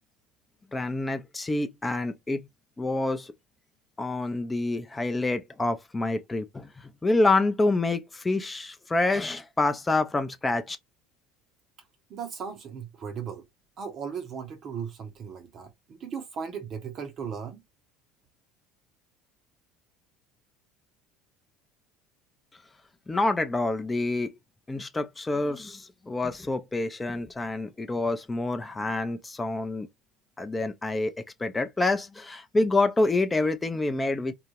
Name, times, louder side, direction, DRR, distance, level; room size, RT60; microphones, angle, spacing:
voice 1, 0.7-2.5 2.8-3.3 4.0-6.7 7.0-10.8 23.1-24.3 24.7-29.9 30.4-31.1 31.4-34.3, left 2 dB, 15° left, 0.5 m, -27 dB
voice 2, 12.1-13.4 13.8-17.6, right 6 dB, 45° right, 0.6 m, -37 dB
2.3 x 2.1 x 3.1 m
figure-of-eight pair, 65°, 0 cm